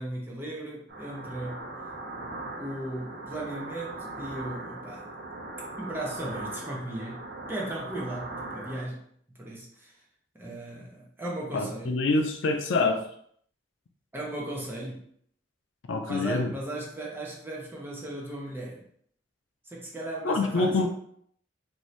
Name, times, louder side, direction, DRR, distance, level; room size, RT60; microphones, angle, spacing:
voice 1, 0.0-1.6 2.6-5.1 5.8-7.2 7.5-9.0 9.3-9.9 10.3-12.0 14.1-15.0 16.1-18.8 19.7-20.9, right 1 dB, 10° right, -3 dB, 0.7 m, -36 dB
sound 1, 0.9-8.8, right 2 dB, 55° right, 0.6 m, -39 dB
voice 2, 11.5-13.0 15.9-16.5 20.2-20.9, left 3 dB, 75° left, 4 dB, 0.4 m, -26 dB
2.7 x 2.6 x 3.1 m, 0.64 s
head